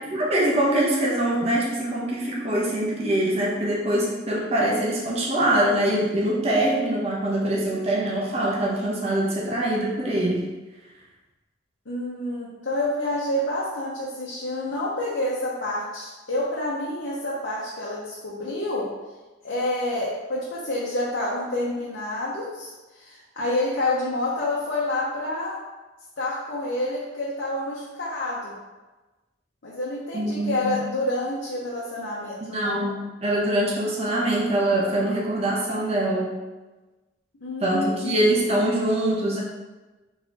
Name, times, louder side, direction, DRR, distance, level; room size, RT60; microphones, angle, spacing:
voice 1, 0.0-10.5 30.1-30.8 32.5-36.3 37.6-39.4, right 1 dB, 35° right, -4 dB, 0.9 m, -23 dB
voice 2, 11.9-18.9 19.4-25.6 26.2-28.5 29.6-32.8 37.4-38.5, left 1 dB, 70° left, -7 dB, 0.9 m, -28 dB
4.3 x 3.9 x 2.9 m, 1.2 s
head